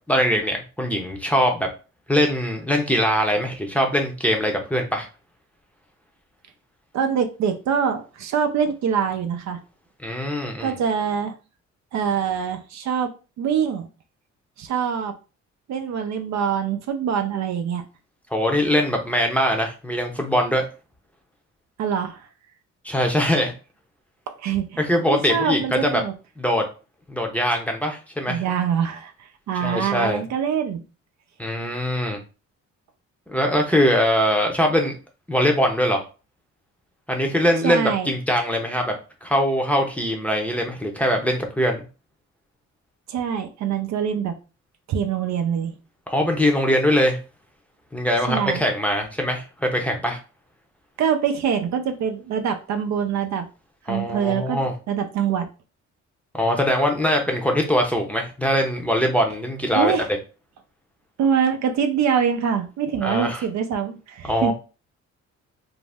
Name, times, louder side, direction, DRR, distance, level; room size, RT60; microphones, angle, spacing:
voice 1, 0.1-1.7 2.1-5.1 10.0-10.7 18.3-20.7 22.8-23.5 24.8-26.0 26.4-26.7 27.1-28.4 29.6-30.2 31.4-32.2 33.3-35.0 35.3-36.0 37.1-38.9 39.2-41.8 46.1-47.2 47.9-50.2 53.9-54.7 56.3-59.9 63.0-63.4 64.3-64.5, equal, 5° left, 2 dB, 0.6 m, -22 dB
voice 2, 6.9-9.6 10.6-11.3 11.9-13.1 13.4-13.9 14.6-15.2 15.7-17.8 21.8-22.3 24.3-24.8 25.1-26.1 28.3-30.8 37.6-38.1 43.1-44.3 44.9-45.7 48.3-48.6 51.0-53.5 53.9-54.6 54.9-55.5 59.7-60.1 61.2-64.5, right 7 dB, 65° right, 7 dB, 0.5 m, -24 dB
2.6 x 2.0 x 3.3 m, 0.33 s
cardioid pair, 90°, 30 cm